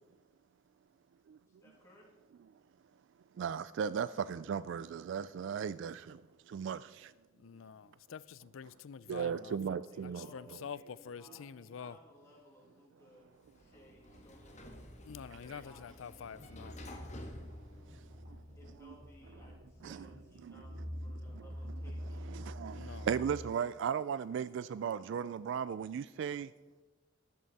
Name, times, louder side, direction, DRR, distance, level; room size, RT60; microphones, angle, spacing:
voice 1, 1.5-2.1 9.9-14.8 15.4-15.9 18.6-22.4, left 1 dB, 15° left, 2.5 m, -61 dB
voice 2, 3.4-6.2 6.5-7.1 9.1-10.3 17.9-18.0 18.8-18.9 19.8-20.1 20.4-20.6 21.3-21.4 22.1-26.5, right 7 dB, 65° right, 0.3 m, -36 dB
voice 3, 7.3-12.0 15.1-16.8 22.7-23.1, left 7 dB, 90° left, 0.4 m, -47 dB
Sliding door, 13.3-18.5, left 1 dB, 40° left, 1.6 m, -52 dB
sound 1, 16.2-23.4, equal, 50° right, 3.9 m, -46 dB
13.5 x 11.0 x 4.1 m
head